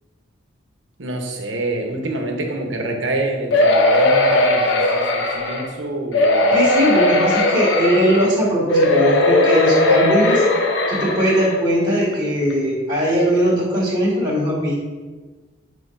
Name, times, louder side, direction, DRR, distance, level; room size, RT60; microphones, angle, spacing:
voice 1, 1.0-6.5, right 2 dB, 80° right, 3 dB, 0.9 m, -27 dB
sound 1, 3.5-5.7 6.1-8.3 8.7-11.6 12.1-12.2 12.5-12.6, left 2 dB, 80° left, 0.8 m, -17 dB
voice 2, 6.5-10.4 10.9-14.8, equal, 25° right, -8 dB, 1.9 m, -19 dB
8.3 x 4.4 x 2.6 m, 1.3 s
head